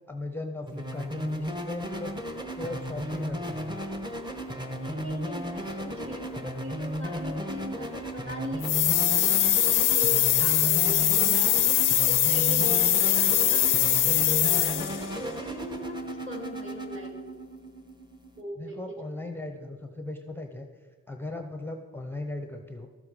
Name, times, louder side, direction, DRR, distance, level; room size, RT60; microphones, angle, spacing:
voice 1, 0.1-2.2 2.5-3.8 18.6-20.7 21.1-22.9, left 2 dB, 5° left, 4 dB, 0.7 m, -37 dB
sound 1, 0.7-18.4, equal, 15° right, 1.1 m, -35 dB
voice 2, 4.7-11.5 12.1-17.4 18.4-19.0, equal, 40° right, -2 dB, 2.7 m, -39 dB
sound 2, 8.6-15.1, left 11 dB, 90° left, 0.5 m, -22 dB
13.0 x 7.0 x 5.0 m, 1.5 s
wide cardioid pair, 90°, 31 cm